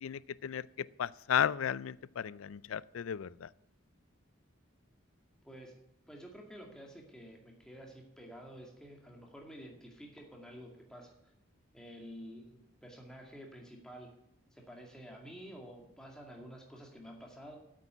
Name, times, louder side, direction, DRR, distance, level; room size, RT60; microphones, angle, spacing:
voice 1, 0.0-3.5, left 8 dB, 85° left, 21 dB, 0.4 m, -34 dB
voice 2, 6.1-11.1 11.7-14.1 14.5-17.6, equal, 5° left, 0 dB, 2.1 m, -50 dB
8.5 x 8.4 x 9.0 m, 0.81 s
head